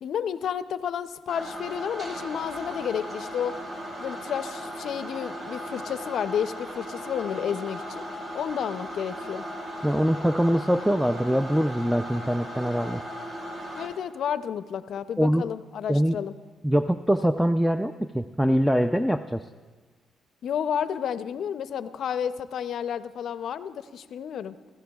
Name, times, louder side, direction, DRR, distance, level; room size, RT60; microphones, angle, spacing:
voice 1, 0.0-3.5 4.0-8.0 8.3-9.4 13.7-16.3 20.4-24.6, left 8 dB, 65° left, 12 dB, 0.5 m, -31 dB
sound 1, 1.3-13.9, equal, 50° right, 4.2 m, -37 dB
voice 2, 9.8-13.0 15.2-15.5 15.9-16.2 16.6-19.4, equal, ahead, 9 dB, 0.4 m, -23 dB
24.5 x 14.0 x 2.3 m, 1.5 s
cardioid pair, 90°, 0 cm